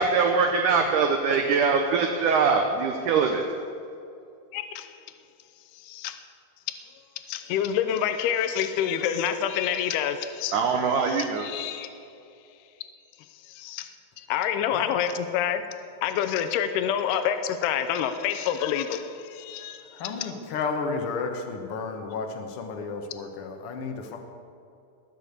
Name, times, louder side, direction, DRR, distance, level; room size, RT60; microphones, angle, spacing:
voice 1, 0.0-3.4 10.5-11.5, right 5 dB, 70° right, 4 dB, 2.1 m, -22 dB
voice 2, 4.5-5.0 5.7-6.2 6.8-6.9 7.3-10.8 11.0-12.0 13.3-15.6 16.0-20.3, left 9 dB, 85° left, 9 dB, 2.7 m, -28 dB
voice 3, 19.9-24.2, left 4 dB, 65° left, 4 dB, 1.4 m, -32 dB
21.0 x 7.1 x 8.1 m, 2.6 s
omnidirectional pair, 4.5 m